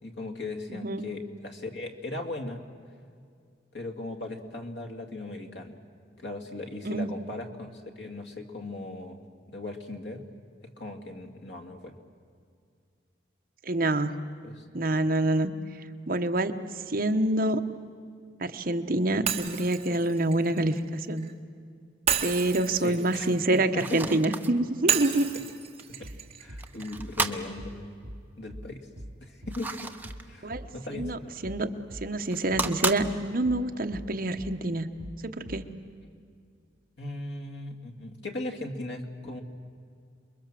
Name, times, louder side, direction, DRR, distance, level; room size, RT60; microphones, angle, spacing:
voice 1, 0.0-2.6 3.7-5.7 6.2-10.3 10.8-12.0 14.4-14.7 22.7-23.3 23.7-24.0 26.0-26.1 26.4-28.0 28.4-28.9 29.2-29.9 30.2-31.1 37.0-39.4, left 2 dB, 70° left, 4 dB, 2.4 m, -38 dB
voice 2, 0.7-1.0 6.8-7.1 13.6-14.1 14.7-15.5 16.1-16.5 16.9-17.6 18.4-21.2 22.2-25.3 30.4-30.6 30.9-34.9 35.2-35.6, right 1 dB, 50° right, 7 dB, 1.1 m, -27 dB
Shatter, 19.3-21.3 22.1-24.2 24.9-27.0, right 8 dB, 35° right, 1.6 m, -32 dB
sound 1, 23.8-24.5 24.9-25.0 25.8-25.9 26.6-27.4 29.5-30.3 32.2-33.0, right 3 dB, 10° right, 1.0 m, -32 dB
sound 2, 26.0-26.2 26.5-26.7 26.9-27.1 27.6-27.8 28.0-28.2 28.5-28.7 29.0-29.2 29.4-29.6 30.0-30.2 30.5-30.7 31.0-31.2 31.4-31.6 31.9-32.1 32.5-32.7 33.0-33.2 33.4-33.6 33.9-34.1 34.4-34.6 35.0-35.2 35.5-35.7, equal, 65° right, 2.6 m, -42 dB
28.5 x 22.0 x 7.6 m, 2.3 s
head